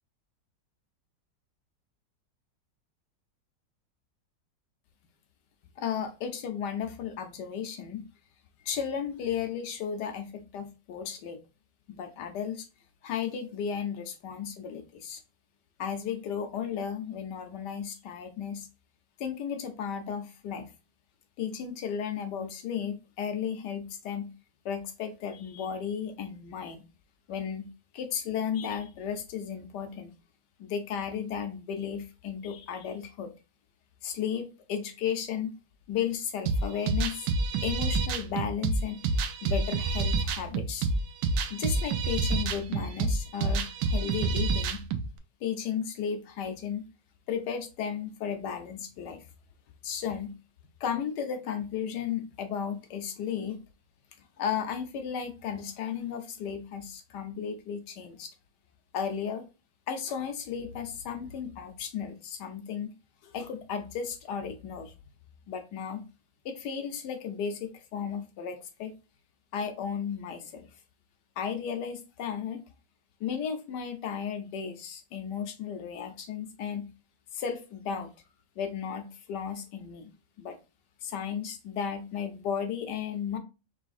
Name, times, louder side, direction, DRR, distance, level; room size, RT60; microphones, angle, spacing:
voice 1, 5.8-8.0 8.6-11.4 11.9-12.7 13.0-15.2 15.8-18.7 19.2-20.7 21.4-24.3 24.6-26.9 27.3-27.7 27.9-30.1 30.6-33.3 34.0-35.5 35.9-37.3 37.6-39.0 39.4-40.9 41.5-44.9 45.4-46.8 47.3-49.3 49.8-50.4 50.8-53.6 54.4-58.3 58.9-59.4 59.9-62.9 63.2-64.9 65.5-66.0 66.4-68.9 69.5-70.7 71.4-72.6 73.2-76.9 77.3-78.1 78.6-80.6 81.0-83.4, left 7 dB, 80° left, 1.3 m, -34 dB
sound 1, 36.5-45.1, right 3 dB, 90° right, 1.2 m, -28 dB
5.0 x 3.1 x 2.4 m
omnidirectional pair, 1.9 m